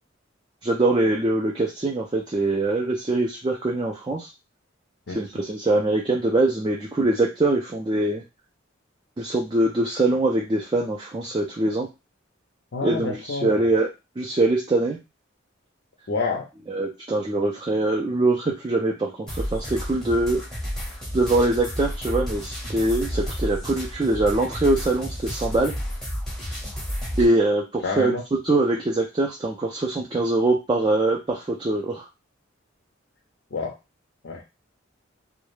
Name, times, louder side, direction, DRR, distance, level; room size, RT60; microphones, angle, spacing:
voice 1, 0.6-4.3 5.1-8.2 9.2-11.9 12.8-13.9 14.2-15.0 16.7-20.4 21.1-25.7 27.2-28.1 28.4-32.1, right 2 dB, 25° right, -2 dB, 0.3 m, -23 dB
voice 2, 12.7-13.6 16.1-16.5 27.8-28.2 33.5-33.8 34.2-34.4, left 4 dB, 60° left, -1 dB, 0.5 m, -28 dB
sound 1, 19.3-27.3, equal, 5° left, 0.7 m, -31 dB
2.2 x 2.0 x 3.1 m, 0.25 s
head